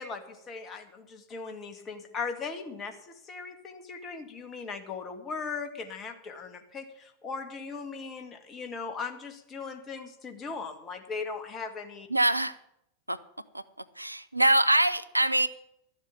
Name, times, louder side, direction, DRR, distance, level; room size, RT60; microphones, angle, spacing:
voice 1, 0.0-12.1, left 4 dB, 25° left, 7 dB, 2.0 m, -38 dB
voice 2, 12.1-12.6 13.1-13.2 13.5-13.6 14.0-15.5, right 1 dB, 85° right, 14 dB, 0.6 m, -24 dB
13.0 x 7.4 x 8.6 m, 0.77 s
figure-of-eight pair, 90°, 0 cm